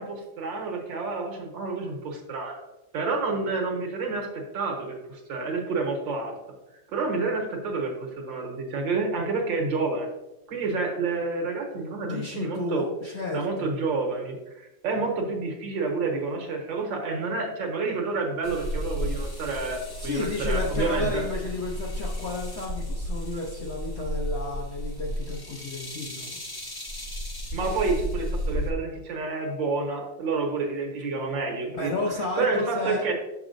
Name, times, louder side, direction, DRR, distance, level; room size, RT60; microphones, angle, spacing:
voice 1, 0.0-2.6 2.9-6.4 6.9-10.1 10.5-12.9 13.3-21.2 27.5-31.9 32.4-33.1, right 3 dB, 75° right, 0 dB, 1.9 m, -29 dB
voice 2, 12.1-13.7 20.0-26.4 31.8-33.1, left 2 dB, 60° left, -2 dB, 0.7 m, -32 dB
sound 1, 18.4-28.7, equal, 25° left, 0.5 m, -33 dB
7.0 x 6.0 x 2.6 m, 0.97 s
omnidirectional pair, 2.0 m